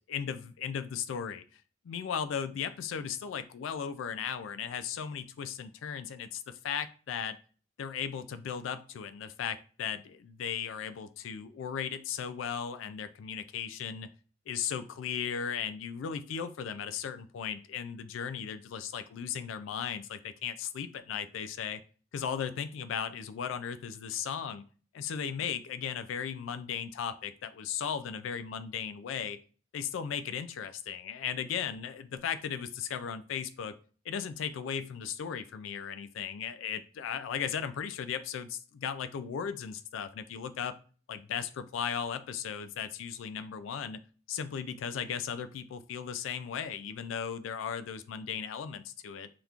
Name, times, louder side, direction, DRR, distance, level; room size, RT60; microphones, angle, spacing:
voice 1, 0.1-1.4 1.8-7.4 7.8-14.1 14.5-21.8 22.1-24.6 24.9-29.4 29.7-33.8 34.1-40.7 41.1-44.0 44.3-49.3, left 7 dB, 90° left, 13 dB, 0.3 m, -36 dB
3.4 x 2.8 x 2.4 m, 0.40 s
head